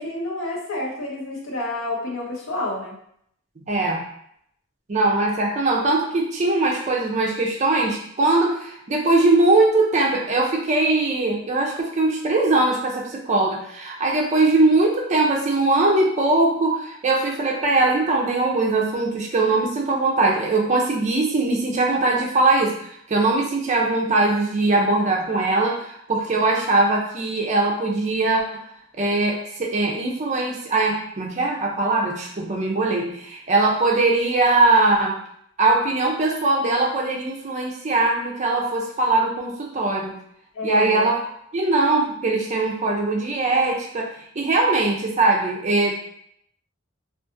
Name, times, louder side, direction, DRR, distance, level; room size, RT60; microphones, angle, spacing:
voice 1, 0.0-3.0 40.5-41.1, left 2 dB, 70° left, -2 dB, 0.7 m, -29 dB
voice 2, 3.7-4.0 4.9-22.8 23.1-28.6 29.0-35.2 35.6-40.2 40.6-41.2 41.5-44.1 44.4-45.9, right 2 dB, 35° right, 0 dB, 0.4 m, -21 dB
2.5 x 2.3 x 2.5 m, 0.70 s
head